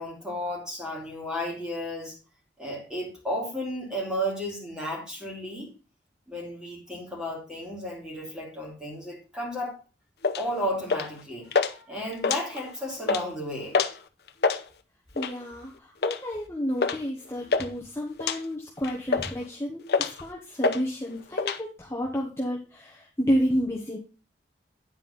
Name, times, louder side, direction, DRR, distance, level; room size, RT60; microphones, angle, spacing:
voice 1, 0.0-2.2 2.6-5.7 6.3-9.8 10.4-13.8, equal, 5° right, -2 dB, 2.8 m, -33 dB
sound 1, 10.2-10.4 10.9-11.2 11.5-11.7 12.1-12.7 13.0-13.2 13.7-14.0 14.3-14.6 15.2-15.4 16.0-16.2 16.8-17.0 17.2-17.7 18.2-18.4 18.8-19.4 19.9-20.2 20.6-20.8 21.1-21.6, left 4 dB, 60° left, 0.7 m, -26 dB
voice 2, 15.1-24.0, equal, 15° left, -2 dB, 1.2 m, -30 dB
9.8 x 4.5 x 5.4 m, 0.33 s
head